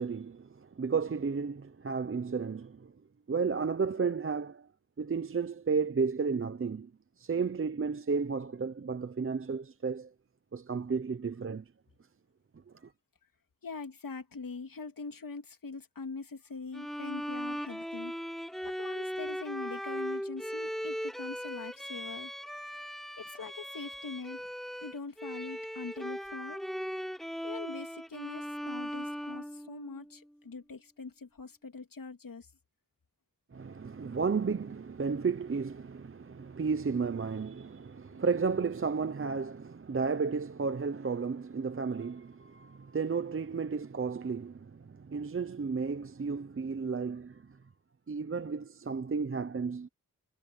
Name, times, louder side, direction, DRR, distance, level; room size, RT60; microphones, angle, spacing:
voice 1, 0.0-2.9 3.3-4.7 5.0-6.9 7.2-10.1 10.5-11.6 33.5-47.4 48.1-49.9, right 5 dB, 35° right, 0.8 m, -33 dB
voice 2, 13.6-18.1 18.6-22.3 23.2-24.4 24.8-26.6 27.4-32.5 38.1-38.2, left 4 dB, 70° left, 3.1 m, -43 dB
Bowed string instrument, 16.7-30.2, equal, ahead, 6.3 m, -38 dB
wide cardioid pair, 115°, 35 cm